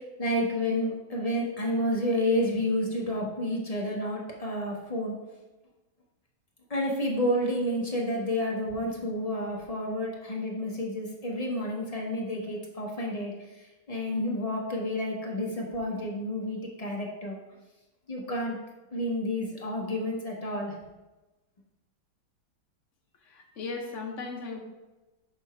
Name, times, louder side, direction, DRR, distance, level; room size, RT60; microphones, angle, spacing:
voice 1, 0.0-5.1 6.7-13.3 13.9-17.4 18.1-18.6 18.9-20.7, left 1 dB, 30° left, -2 dB, 0.7 m, -30 dB
voice 2, 23.2-24.6, left 4 dB, 50° left, 2 dB, 1.0 m, -37 dB
6.7 x 4.3 x 4.6 m, 1.1 s
omnidirectional pair, 2.2 m